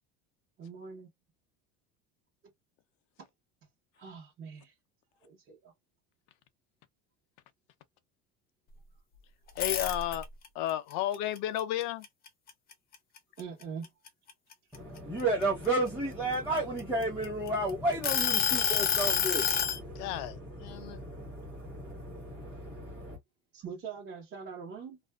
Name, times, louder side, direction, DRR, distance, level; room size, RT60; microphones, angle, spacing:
voice 1, 0.6-1.1 4.0-4.7 5.2-5.7 13.4-13.9 14.7-14.8 23.5-25.0, right 6 dB, 35° right, 1.0 m, -43 dB
sound 1, 9.5-10.5 10.9-12.7 13.2-13.4 13.8-15.7 16.4-17.5 18.0-19.8, left 7 dB, 30° left, 0.6 m, -28 dB
voice 2, 9.6-10.3 10.5-12.1 19.9-21.0, left 13 dB, 70° left, 0.7 m, -33 dB
voice 3, 14.7-23.2, right 2 dB, 5° right, 0.9 m, -33 dB
2.5 x 2.2 x 2.3 m
cardioid pair, 145°, 32 cm